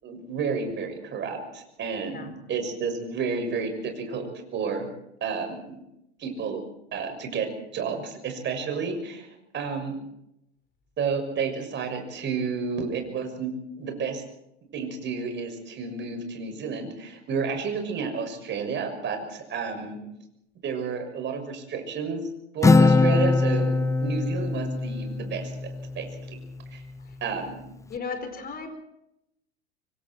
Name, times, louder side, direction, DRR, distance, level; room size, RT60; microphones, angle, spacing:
voice 1, 0.0-4.9 5.2-5.8 6.2-6.6 6.9-9.3 9.5-10.0 11.0-14.2 14.7-20.0 20.6-22.2 22.5-23.7 24.0-25.5 25.9-26.4 26.7-26.8 27.2-27.6, right 5 dB, 35° right, 5 dB, 6.5 m, -31 dB
Acoustic guitar, 22.6-26.3, left 3 dB, 10° left, 0.7 m, -22 dB
voice 2, 27.9-28.7, left 5 dB, 25° left, 7 dB, 5.2 m, -35 dB
26.0 x 24.5 x 4.6 m, 0.82 s
hypercardioid pair, 90°, 33 cm